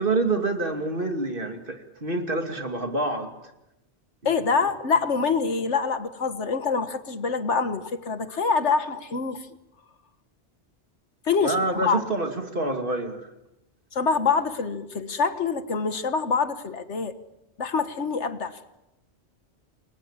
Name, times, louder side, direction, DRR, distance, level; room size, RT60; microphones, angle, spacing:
voice 1, 0.0-3.3 11.4-13.2, right 2 dB, 50° right, 5 dB, 2.8 m, -27 dB
voice 2, 4.3-9.4 11.3-12.0 13.9-17.2 17.6-18.6, left 5 dB, 80° left, 10 dB, 1.8 m, -25 dB
29.5 x 23.0 x 7.4 m, 0.92 s
omnidirectional pair, 1.2 m